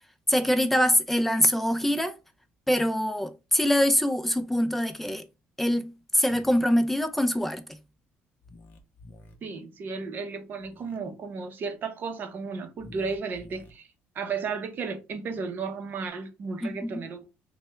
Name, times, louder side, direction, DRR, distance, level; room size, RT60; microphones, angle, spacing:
voice 1, 0.3-2.2 2.7-5.2 5.6-7.6 16.6-17.0, equal, 5° left, 0.4 m, -24 dB
sound 1, 6.2-6.6 8.4-9.3 10.6-11.0 12.8-13.7, left 2 dB, 40° left, 0.6 m, -49 dB
voice 2, 9.4-13.9 14.1-17.3, right 5 dB, 45° right, 0.6 m, -34 dB
3.3 x 2.1 x 3.0 m
cardioid pair, 140°, 5 cm